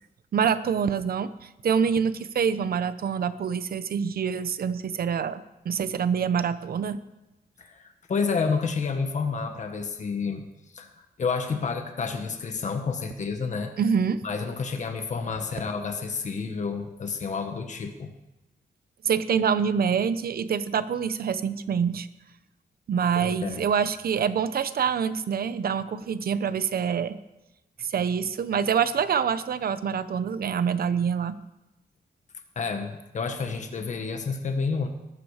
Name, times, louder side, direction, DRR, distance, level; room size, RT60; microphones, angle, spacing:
voice 1, 0.3-7.0 13.8-14.2 19.0-22.1 22.9-27.2 27.8-31.4, right 7 dB, 65° right, 13 dB, 0.9 m, -26 dB
voice 2, 7.6-10.4 10.7-13.7 14.2-18.1 23.2-23.7 32.5-34.9, left 5 dB, 45° left, 5 dB, 1.5 m, -30 dB
20.5 x 13.0 x 5.0 m, 0.97 s
wide cardioid pair, 175°, 17 cm